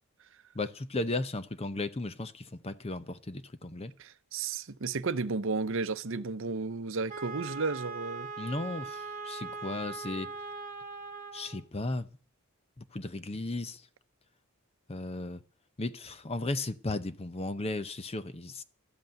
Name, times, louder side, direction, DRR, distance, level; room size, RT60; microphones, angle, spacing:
voice 1, 0.5-3.9 8.4-10.3 11.3-12.1 12.8-13.9 14.9-15.4 15.8-18.6, left 2 dB, 25° left, 0.7 m, -35 dB
voice 2, 4.0-8.3, right 4 dB, 60° right, 0.7 m, -33 dB
Wind instrument woodwind instrument, 7.1-11.6, right 4 dB, 35° right, 1.3 m, -40 dB
13.0 x 8.3 x 9.0 m
head